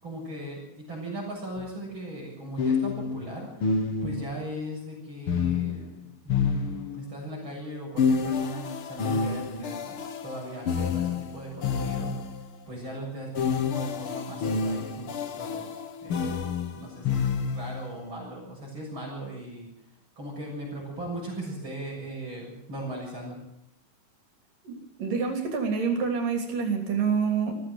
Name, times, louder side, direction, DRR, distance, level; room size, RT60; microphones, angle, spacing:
voice 1, 0.0-12.1 12.7-15.7 16.0-19.7 20.2-23.4, right 1 dB, 35° right, -2 dB, 8.0 m, -38 dB
sound 1, 1.6-1.7 2.6-4.4 5.3-7.2 8.0-12.5 13.3-17.9, left 5 dB, 50° left, 1.9 m, -29 dB
voice 2, 24.6-27.6, right 5 dB, 75° right, 4 dB, 4.8 m, -27 dB
22.5 x 15.5 x 8.0 m, 0.77 s
omnidirectional pair, 3.9 m